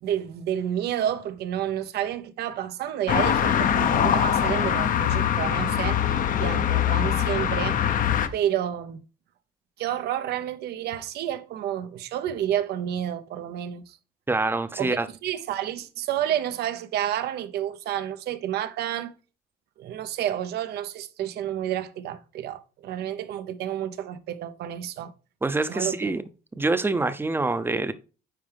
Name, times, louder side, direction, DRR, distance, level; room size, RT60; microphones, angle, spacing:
voice 1, 0.0-6.0 6.4-7.8 8.3-9.0 9.8-14.0 14.8-19.1 19.8-25.1 25.7-26.1, right 11 dB, 75° right, 0.8 m, -30 dB
sound 1, 3.1-8.3, left 9 dB, 55° left, 0.8 m, -23 dB
voice 2, 14.3-15.1 25.4-26.2 26.5-27.9, right 3 dB, 15° right, 0.7 m, -25 dB
9.1 x 4.6 x 3.4 m
cardioid pair, 110°, 17 cm